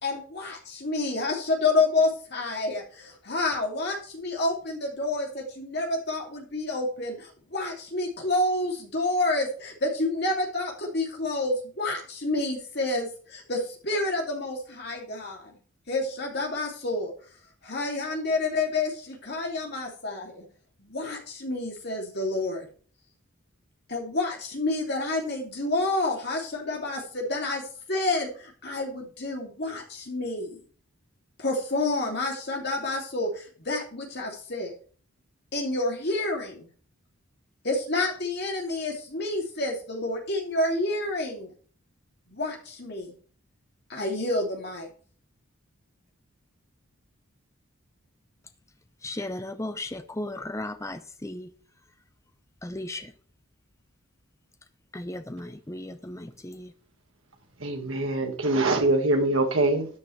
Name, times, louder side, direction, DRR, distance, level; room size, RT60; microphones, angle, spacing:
voice 1, 0.0-15.5 15.9-17.1 17.6-20.5 20.8-22.7 23.9-27.6 27.9-30.6 31.4-34.7 35.5-36.7 37.6-41.5 42.3-43.1 43.9-44.9, left 2 dB, 50° left, 2.8 m, -29 dB
voice 2, 49.0-51.5 52.6-53.1 54.9-56.7, left 1 dB, 15° left, 0.6 m, -36 dB
voice 3, 57.6-59.9, right 2 dB, 70° right, 1.9 m, -23 dB
13.0 x 9.6 x 3.3 m
head